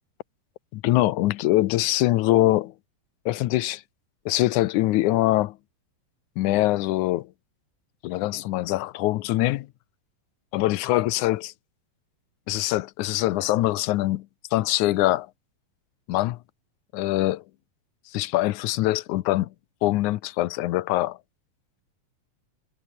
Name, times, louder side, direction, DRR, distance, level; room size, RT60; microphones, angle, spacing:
voice 1, 0.7-2.7 3.3-3.8 4.3-5.6 6.4-7.3 8.0-9.7 10.5-11.5 12.5-14.3 14.5-15.3 16.1-16.4 16.9-17.4 18.1-19.5 19.8-21.2, left 16 dB, 75° left, 2.0 m, -23 dB
omnidirectional pair, 4.0 m